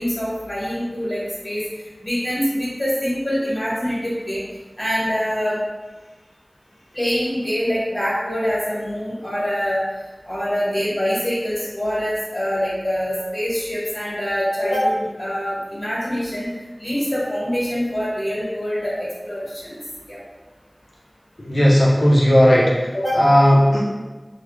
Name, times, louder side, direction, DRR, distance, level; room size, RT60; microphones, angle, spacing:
voice 1, 0.0-1.6 2.0-4.4 4.8-5.6 6.9-9.8 10.3-16.5 16.8-19.8 20.1-20.2 22.9-23.2, equal, 35° left, -8 dB, 1.3 m, -24 dB
voice 2, 21.4-22.8 23.2-23.8, equal, 70° left, -5 dB, 0.6 m, -14 dB
3.3 x 2.0 x 3.1 m, 1.2 s
wide cardioid pair, 40°, 0 cm